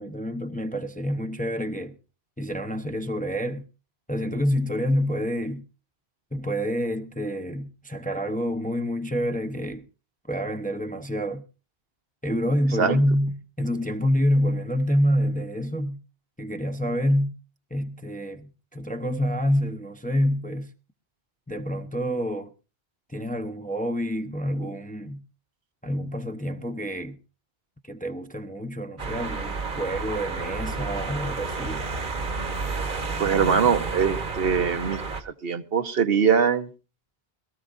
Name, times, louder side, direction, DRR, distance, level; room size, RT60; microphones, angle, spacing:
voice 1, 0.0-2.0 2.4-3.7 4.1-5.7 6.3-9.8 10.3-11.4 12.2-16.0 16.4-17.4 17.7-20.7 21.5-22.5 23.1-25.2 25.8-27.2 27.8-31.8, equal, 10° left, 0.7 m, -27 dB
sound 1, 29.0-35.2, right 4 dB, 50° right, 1.3 m, -31 dB
voice 2, 33.2-36.7, right 6 dB, 70° right, 1.1 m, -22 dB
21.5 x 14.0 x 2.6 m
omnidirectional pair, 1.1 m